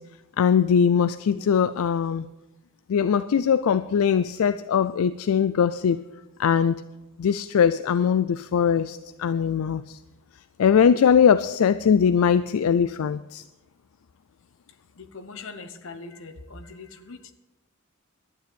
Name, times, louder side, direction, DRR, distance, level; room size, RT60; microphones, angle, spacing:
voice 1, 0.4-2.3 2.9-6.0 6.4-6.7 7.2-10.0 10.6-13.4, left 7 dB, 80° left, 14 dB, 0.4 m, -21 dB
voice 2, 15.0-17.3, left 4 dB, 60° left, 8 dB, 1.1 m, -41 dB
12.0 x 9.3 x 6.8 m, 1.0 s
head